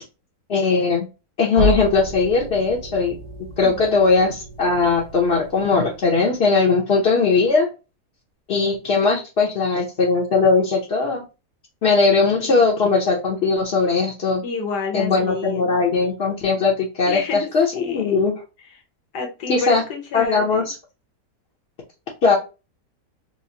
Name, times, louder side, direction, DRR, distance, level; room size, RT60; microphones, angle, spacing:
voice 1, 0.5-1.1 1.4-3.2 3.6-7.7 8.5-11.2 11.8-14.4 14.9-18.3 19.5-19.8 20.1-20.7 22.2-22.4, left 4 dB, 55° left, -3 dB, 0.8 m, -19 dB
sound 1, 1.5-6.4, right 1 dB, 65° right, 2.1 m, -30 dB
voice 2, 3.6-4.0 12.4-12.7 14.4-16.0 17.1-18.2 19.1-20.7, left 4 dB, 80° left, 2 dB, 1.6 m, -30 dB
4.8 x 2.0 x 2.7 m, 0.29 s
omnidirectional pair, 1.7 m